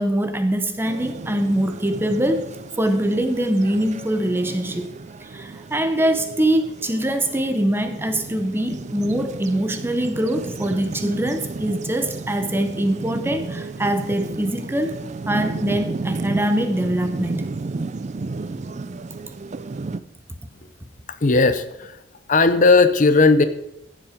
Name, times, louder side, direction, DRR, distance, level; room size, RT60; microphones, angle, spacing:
voice 1, 0.0-2.5 2.8-4.9 5.2-17.4, right 1 dB, 10° right, 8 dB, 0.8 m, -23 dB
sound 1, 0.8-20.0, right 3 dB, 35° right, 0.4 m, -33 dB
voice 2, 21.2-22.0 22.3-23.4, left 3 dB, 40° left, 11 dB, 0.7 m, -16 dB
15.0 x 7.3 x 5.1 m, 0.83 s
head